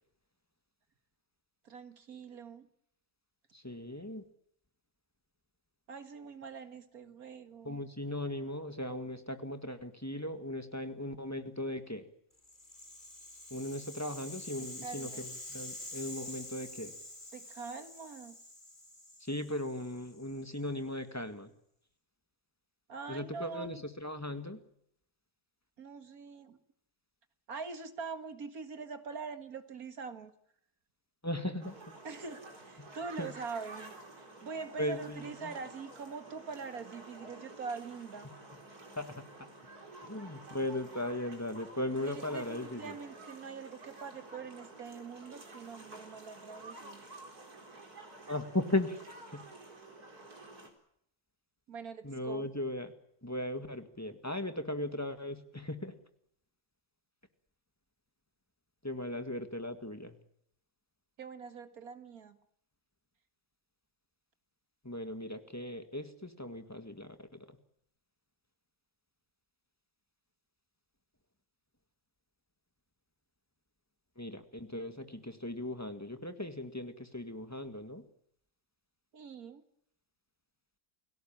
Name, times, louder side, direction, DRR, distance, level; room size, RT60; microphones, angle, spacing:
voice 1, 1.6-2.7 5.9-7.8 14.8-15.3 17.3-18.4 22.9-23.8 25.8-26.6 27.5-30.3 32.0-38.3 42.0-47.0 51.7-52.5 61.2-62.4 79.1-79.6, right 5 dB, 75° right, 9 dB, 2.3 m, -44 dB
voice 2, 3.5-4.2 7.6-12.1 13.5-17.0 19.2-21.5 23.1-24.6 31.2-31.8 32.8-32.9 33.2-33.3 34.8-35.5 39.0-39.5 40.0-43.0 48.3-49.0 49.3-49.4 52.0-52.9 53.2-56.0 58.8-60.2 64.8-67.6 74.2-78.1, left 1 dB, 10° left, 8 dB, 1.7 m, -38 dB
Rattle (instrument), 12.4-20.6, left 1 dB, 30° left, 4.2 m, -47 dB
sound 1, 31.6-50.7, right 2 dB, 90° right, 4.7 m, -51 dB
29.5 x 17.5 x 7.4 m, 0.72 s
omnidirectional pair, 1.6 m